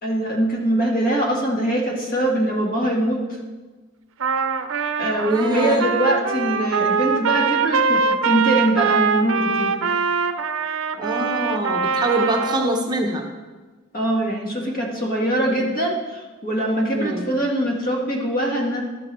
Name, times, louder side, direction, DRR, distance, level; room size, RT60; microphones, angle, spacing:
voice 1, 0.0-3.2 5.0-9.7 13.9-18.8, right 1 dB, 45° left, -1 dB, 1.8 m, -22 dB
Trumpet, 4.2-12.7, right 5 dB, 70° right, 0.5 m, -23 dB
voice 2, 5.3-5.8 11.0-13.3 15.5-15.8 16.9-17.3, right 2 dB, 20° right, 1 dB, 0.8 m, -24 dB
12.5 x 6.4 x 4.2 m, 1.3 s
head